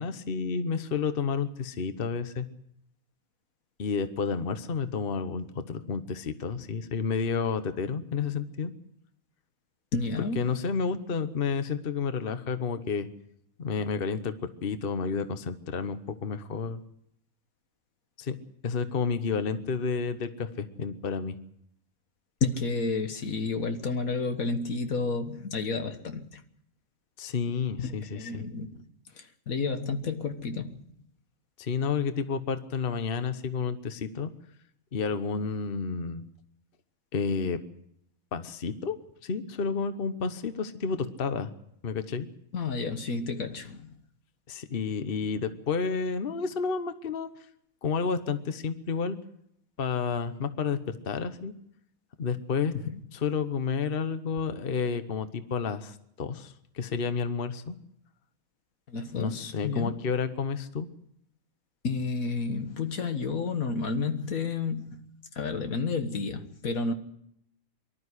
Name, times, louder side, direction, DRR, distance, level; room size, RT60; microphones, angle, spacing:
voice 1, 0.0-2.5 3.8-8.7 10.4-13.1 13.6-16.8 18.2-18.4 18.6-21.4 27.2-28.4 31.6-34.3 34.9-36.2 37.1-37.6 38.3-39.0 39.2-41.5 41.8-42.3 44.5-47.3 47.8-49.2 49.8-51.5 52.2-52.7 53.1-57.7 59.2-60.9, left 5 dB, 45° left, 1.2 m, -30 dB
voice 2, 9.9-10.6 22.4-26.4 27.8-28.8 29.2-30.8 42.5-43.9 52.7-52.9 58.9-59.9 61.8-65.0 65.4-66.9, left 4 dB, 75° left, 1.9 m, -31 dB
24.0 x 12.5 x 9.8 m
omnidirectional pair, 1.5 m